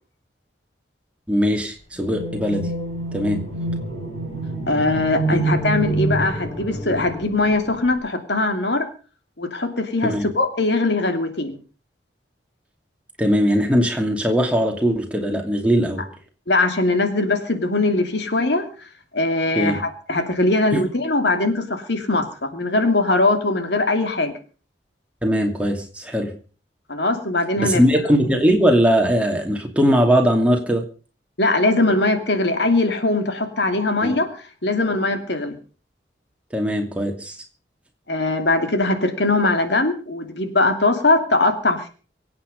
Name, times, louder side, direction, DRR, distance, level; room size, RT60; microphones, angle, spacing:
voice 1, 1.3-2.7 3.1-3.4 5.3-5.4 10.0-10.3 13.2-16.0 19.5-19.8 20.7-20.8 25.2-26.3 27.6-30.8 34.0-34.1 36.5-37.4, equal, 5° right, 2 dB, 2.6 m, -20 dB
sound 1, 2.0-8.0, right 2 dB, 35° left, 7.2 m, -27 dB
voice 2, 4.7-8.9 9.4-11.6 16.5-18.6 19.1-24.3 26.9-27.8 31.4-34.3 34.6-35.6 38.1-41.9, left 2 dB, 70° left, 7 dB, 2.7 m, -21 dB
24.0 x 8.8 x 5.3 m, 0.39 s
head